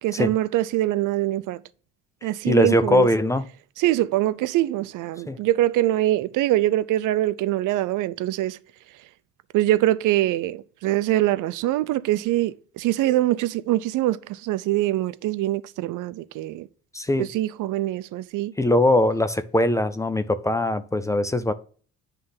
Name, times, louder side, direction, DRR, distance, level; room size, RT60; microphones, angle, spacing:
voice 1, 0.0-1.6 2.2-3.1 3.8-8.6 9.5-16.7 17.2-18.5, right 15 dB, 90° right, 0.5 m, -23 dB
voice 2, 2.4-3.5 5.3-5.4 16.9-17.3 18.6-21.5, left 1 dB, 10° left, 0.3 m, -21 dB
9.8 x 3.3 x 5.4 m
cardioid pair, 155°, 30 cm